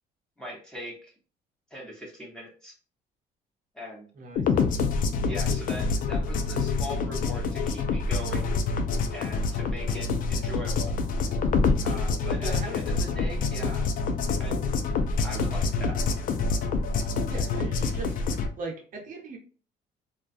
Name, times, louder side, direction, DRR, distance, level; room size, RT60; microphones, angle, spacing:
voice 1, 0.4-1.1 1.7-2.7 3.7-4.1 5.2-8.5 9.1-10.9 11.8-13.9 14.4-14.6 15.2-16.0, left 1 dB, 5° left, -3 dB, 1.0 m, -40 dB
voice 2, 4.1-4.7 12.4-12.8 17.3-19.4, right 3 dB, 50° right, 0 dB, 0.7 m, -39 dB
sound 1, 4.4-18.5, left 4 dB, 55° left, 0.4 m, -27 dB
2.3 x 2.2 x 2.5 m, 0.38 s
cardioid pair, 110°, 17 cm